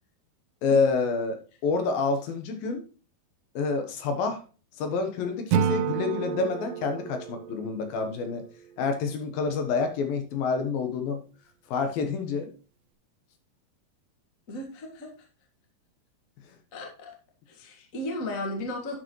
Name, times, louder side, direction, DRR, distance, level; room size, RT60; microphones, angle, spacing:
voice 1, 0.6-2.8 3.6-4.4 4.8-8.4 8.8-11.2 11.7-12.5, left 4 dB, 70° left, 6 dB, 2.8 m, -28 dB
Acoustic guitar / Strum, 5.5-8.7, right 9 dB, 80° right, 2.1 m, -30 dB
voice 2, 14.5-15.1 16.7-17.1 17.5-18.9, left 1 dB, 40° left, 1 dB, 1.1 m, -35 dB
10.5 x 6.8 x 3.1 m, 0.35 s
omnidirectional pair, 4.5 m